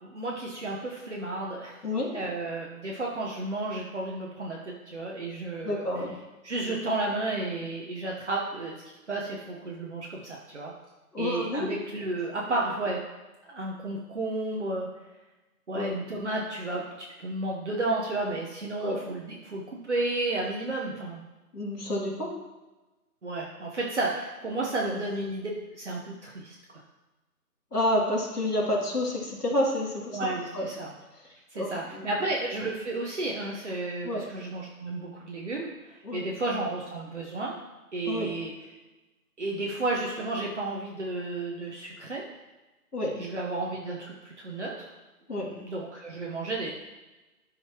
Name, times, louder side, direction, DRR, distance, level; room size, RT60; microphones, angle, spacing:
voice 1, 0.0-1.8 2.1-5.8 6.4-10.7 11.2-13.0 13.5-14.9 15.7-21.2 23.2-25.5 25.8-26.6 30.1-30.9 31.5-37.5 37.9-38.5 39.4-42.2 43.2-44.9 45.6-46.7, right 2 dB, 50° right, -3 dB, 1.1 m, -32 dB
voice 2, 5.6-6.1 11.1-11.7 15.7-15.9 18.8-19.0 21.5-22.3 24.8-24.9 27.7-30.2 30.5-30.7 31.6-32.1 34.0-34.2 36.0-36.2 38.1-38.3 42.9-43.2 45.3-45.5, left 1 dB, 85° left, -3 dB, 2.7 m, -29 dB
12.5 x 5.5 x 3.0 m, 1.1 s
figure-of-eight pair, 170°, 45 cm